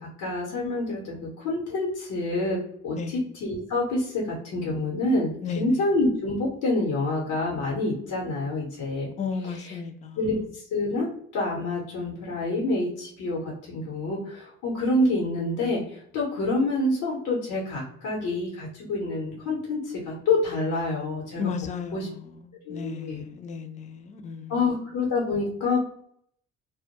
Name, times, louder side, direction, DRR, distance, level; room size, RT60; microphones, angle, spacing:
voice 1, 0.0-9.1 9.4-9.8 10.2-21.4 21.9-22.1 22.7-23.2 24.5-25.8, left 2 dB, 85° left, 0.8 m, -27 dB
voice 2, 5.4-5.8 9.2-10.2 21.4-24.6, left 5 dB, 25° left, 0.3 m, -34 dB
2.1 x 2.1 x 2.9 m
cardioid pair, 90°, 30 cm